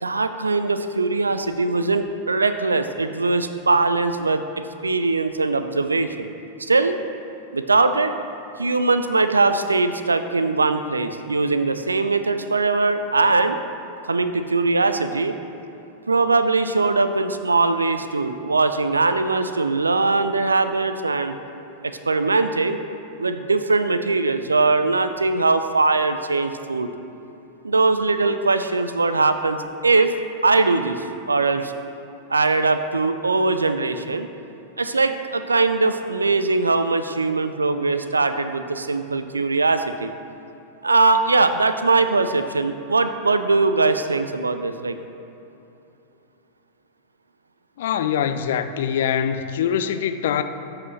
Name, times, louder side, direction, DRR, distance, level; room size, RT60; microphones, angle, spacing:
voice 1, 0.0-4.4 4.8-6.3 6.6-7.0 7.5-8.1 8.6-13.6 14.1-15.4 16.1-21.4 21.8-22.8 23.2-26.9 27.6-30.1 30.4-31.7 32.3-34.3 34.8-40.1 40.8-45.0, right 3 dB, 80° right, 10 dB, 0.4 m, -21 dB
voice 2, 47.8-50.4, left 8 dB, 55° left, 10 dB, 0.4 m, -23 dB
13.5 x 4.9 x 3.0 m, 3.0 s
figure-of-eight pair, 90°, 0 cm